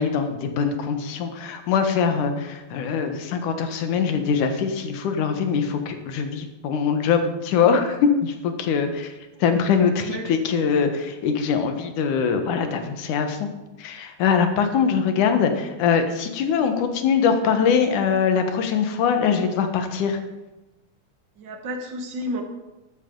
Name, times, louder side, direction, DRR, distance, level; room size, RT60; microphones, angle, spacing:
voice 1, 0.0-9.1 9.4-13.5 13.8-20.2, left 6 dB, 75° left, 7 dB, 2.7 m, -22 dB
voice 2, 21.4-22.4, equal, 45° right, 4 dB, 1.7 m, -31 dB
13.0 x 12.5 x 3.8 m, 1.0 s
omnidirectional pair, 3.6 m